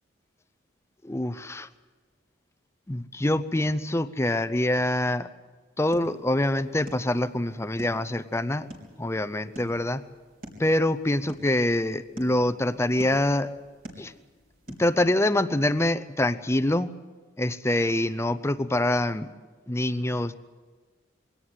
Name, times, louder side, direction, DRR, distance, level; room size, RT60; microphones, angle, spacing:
voice 1, 1.0-1.7 2.9-5.3 5.8-8.7 9.0-10.0 10.6-13.5 14.0-14.1 14.8-16.9 17.4-19.3 19.7-20.3, left 1 dB, 15° left, 13 dB, 0.6 m, -25 dB
sound 1, 5.8-15.0, equal, 50° right, 3.6 m, -48 dB
22.5 x 17.5 x 8.1 m, 1.4 s
head